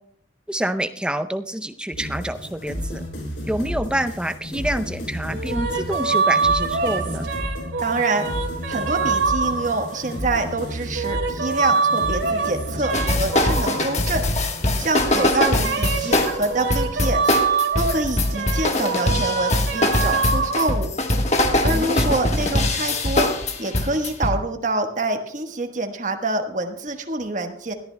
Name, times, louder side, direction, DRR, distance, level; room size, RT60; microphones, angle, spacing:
voice 1, 0.5-3.0 3.5-7.3 21.7-22.0, right 1 dB, 5° right, 10 dB, 0.5 m, -27 dB
sound 1, 1.9-16.9, equal, 80° left, 4.3 m, -33 dB
sound 2, 5.3-10.3 10.8-14.5 14.8-20.7, right 5 dB, 80° right, 2.8 m, -25 dB
voice 2, 7.8-8.3 8.7-14.2 14.8-17.4 17.8-20.9 21.6-27.7, right 2 dB, 45° right, 5 dB, 1.3 m, -26 dB
sound 3, 12.9-24.3, left 1 dB, 40° left, 1.3 m, -22 dB
20.5 x 14.0 x 2.2 m, 0.68 s
head